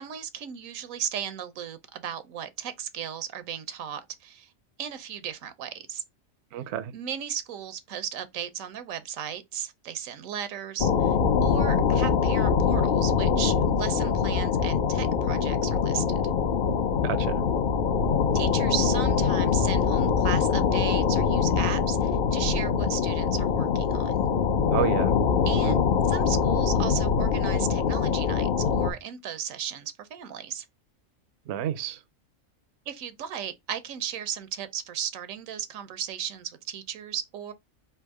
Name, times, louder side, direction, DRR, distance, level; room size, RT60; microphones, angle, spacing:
voice 1, 0.0-4.5 4.8-6.0 6.9-16.0 18.3-24.3 25.4-25.8 26.1-30.7 32.9-37.5, right 9 dB, 85° right, 1.1 m, -36 dB
voice 2, 6.5-6.9 17.0-17.4 24.7-25.1 25.4-25.8 31.5-32.0, right 10 dB, 65° right, 0.8 m, -30 dB
sound 1, 10.8-28.9, left 6 dB, 55° left, 0.6 m, -24 dB
3.4 x 2.7 x 4.6 m
omnidirectional pair, 1.4 m